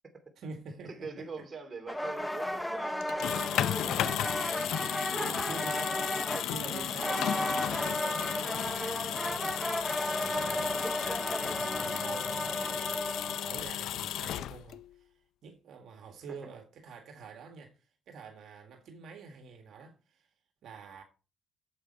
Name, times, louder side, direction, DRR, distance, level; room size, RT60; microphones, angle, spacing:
voice 1, 0.4-1.5 3.6-4.2 5.2-6.2 6.4-15.1 15.4-17.8 18.1-20.3 20.6-21.0, right 5 dB, 70° right, 1.8 m, -47 dB
voice 2, 0.9-3.4 4.7-5.9 6.3-6.7 12.6-12.8 16.3-16.4, right 4 dB, 30° right, 2.6 m, -45 dB
sound 1, 1.9-13.6, left 1 dB, 5° left, 0.8 m, -34 dB
sound 2, 3.0-14.9, left 11 dB, 80° left, 0.4 m, -34 dB
8.5 x 7.7 x 4.4 m
cardioid pair, 115°, 0 cm